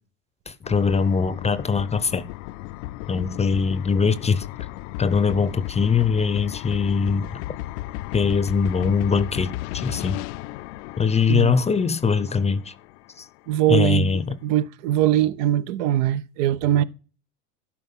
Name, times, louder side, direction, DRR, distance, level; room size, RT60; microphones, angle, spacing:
voice 1, 0.5-2.2 3.1-4.5 5.0-7.3 8.1-10.2 11.0-12.7 13.2-13.3 13.7-14.4, left 5 dB, 15° left, 0.6 m, -22 dB
sound 1, 0.6-13.4, left 17 dB, 70° left, 0.6 m, -35 dB
voice 2, 13.5-16.8, right 12 dB, 70° right, 0.7 m, -22 dB
12.0 x 4.8 x 5.4 m
supercardioid pair, 100°, 39 cm